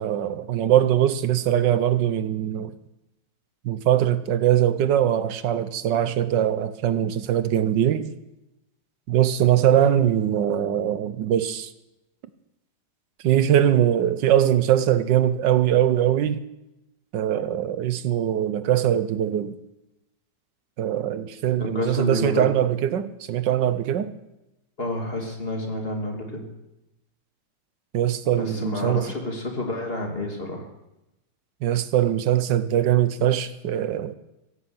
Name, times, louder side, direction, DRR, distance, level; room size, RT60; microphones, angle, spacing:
voice 1, 0.0-2.7 3.6-8.1 9.1-11.7 13.2-16.4 17.1-19.6 20.8-24.1 27.9-29.1 31.6-34.1, right 11 dB, 90° right, 1.5 m, -22 dB
voice 2, 21.5-22.5 24.8-26.4 28.3-30.7, left 1 dB, 30° left, 2.7 m, -29 dB
16.5 x 8.6 x 7.9 m
omnidirectional pair, 1.9 m